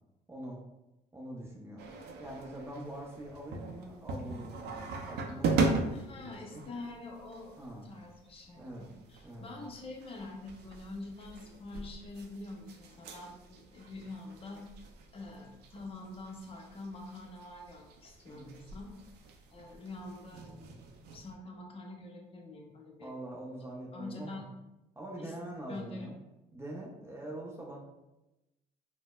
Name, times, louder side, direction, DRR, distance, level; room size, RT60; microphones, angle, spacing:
voice 1, 0.3-0.6 1.1-1.8 2.2-4.7 5.1-6.6 7.6-7.8 8.6-8.9 9.2-9.6 18.3-18.5 23.0-24.4 25.0-26.2 26.5-27.8, right 1 dB, 15° right, -3 dB, 0.5 m, -44 dB
sound 1, 1.8-21.3, right 3 dB, 75° right, 0.4 m, -39 dB
voice 2, 5.9-14.7 15.1-18.9 19.5-20.7 21.1-23.1 23.9-24.5 25.2-25.3 25.7-26.1, left 2 dB, 35° left, 1 dB, 0.6 m, -45 dB
4.0 x 2.0 x 2.3 m, 0.96 s
cardioid pair, 110°, 17 cm